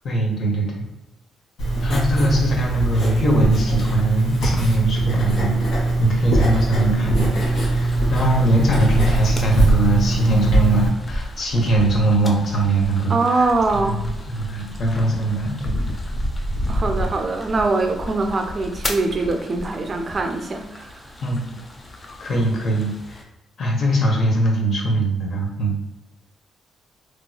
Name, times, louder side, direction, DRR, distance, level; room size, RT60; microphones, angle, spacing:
voice 1, 0.0-0.9 1.8-13.5 13.7-14.0 14.3-15.7 21.2-21.6 22.2-23.2 23.6-25.8, right 1 dB, 55° left, 0 dB, 0.9 m, -21 dB
Writing, 1.6-10.9, right 2 dB, 75° left, 1.3 m, -20 dB
sound 1, 7.3-23.2, equal, 25° left, 0.5 m, -32 dB
voice 2, 13.1-14.0 16.7-21.0, right 3 dB, 40° right, 4 dB, 0.4 m, -22 dB
3.0 x 2.9 x 2.2 m, 1.0 s
cardioid pair, 90°, 0 cm